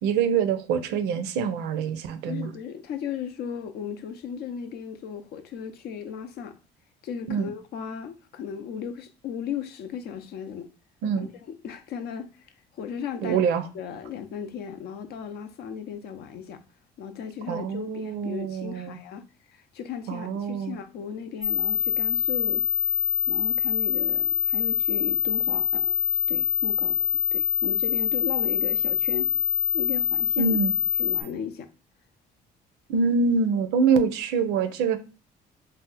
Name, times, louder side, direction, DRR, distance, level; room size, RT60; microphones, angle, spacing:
voice 1, 0.0-2.5 7.3-7.5 11.0-11.3 13.2-13.7 17.5-19.0 20.1-20.8 30.4-30.7 32.9-35.0, right 5 dB, 85° right, 0.5 m, -25 dB
voice 2, 2.3-6.5 7.0-10.7 11.2-11.3 11.6-12.3 12.8-16.6 17.0-19.2 19.5-22.6 23.3-26.0 26.3-29.3 29.7-30.6 31.0-31.7, left 7 dB, 70° left, 0.5 m, -36 dB
sound 1, 21.4-31.2, left 8 dB, 5° left, 0.7 m, -25 dB
2.7 x 2.0 x 3.9 m
cardioid pair, 110°, 17 cm